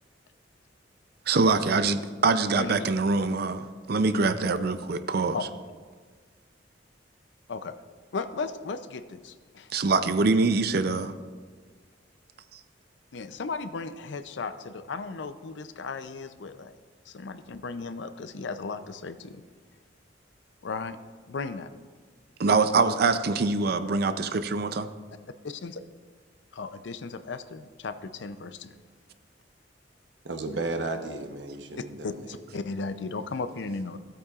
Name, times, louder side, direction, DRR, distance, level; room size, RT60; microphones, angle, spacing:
voice 1, 1.3-5.4 9.7-11.1 22.4-24.9, right 3 dB, 60° right, 11 dB, 0.5 m, -24 dB
voice 2, 8.1-9.7 13.1-16.8 17.1-19.4 20.6-21.0 21.3-21.7 25.4-25.8 26.5-28.7 32.0-34.0, left 4 dB, 75° left, 11 dB, 0.5 m, -35 dB
voice 3, 30.2-32.4, right 3 dB, 75° right, 5 dB, 1.0 m, -34 dB
16.0 x 8.7 x 2.4 m, 1.5 s
head